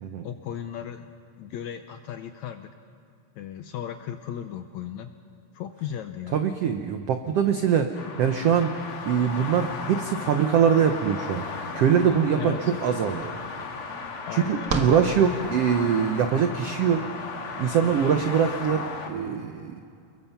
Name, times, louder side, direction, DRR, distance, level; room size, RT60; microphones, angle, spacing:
voice 1, 0.2-1.1 1.4-2.7 3.4-5.1 5.5-6.5 12.4-12.6 14.3-15.5, left 9 dB, 80° left, 8 dB, 1.7 m, -36 dB
voice 2, 6.3-8.7 9.1-11.5 11.7-13.3 14.3-17.0 17.6-19.8, right 7 dB, 90° right, 7 dB, 1.3 m, -23 dB
sound 1, 7.9-19.1, left 4 dB, 45° left, 2.3 m, -36 dB
sound 2, 13.1-15.9, right 3 dB, 60° right, 0.9 m, -34 dB
29.0 x 21.5 x 5.8 m, 2.5 s
omnidirectional pair, 4.0 m